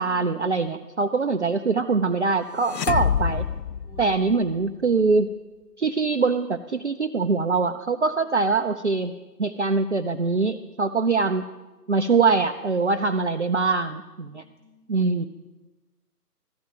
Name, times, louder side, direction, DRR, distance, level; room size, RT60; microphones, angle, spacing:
voice 1, 0.0-3.4 4.0-5.3 5.8-9.1 9.4-11.4 11.9-14.4 14.9-15.3, right 4 dB, 50° right, 7 dB, 0.4 m, -23 dB
voice 2, 1.0-1.5 3.8-4.1 8.1-8.6 14.1-15.3, equal, 15° left, -7 dB, 5.7 m, -51 dB
sound 1, 2.6-4.6, left 8 dB, 85° left, 0.6 m, -26 dB
13.0 x 11.0 x 5.1 m, 1.1 s
figure-of-eight pair, 155°, 48 cm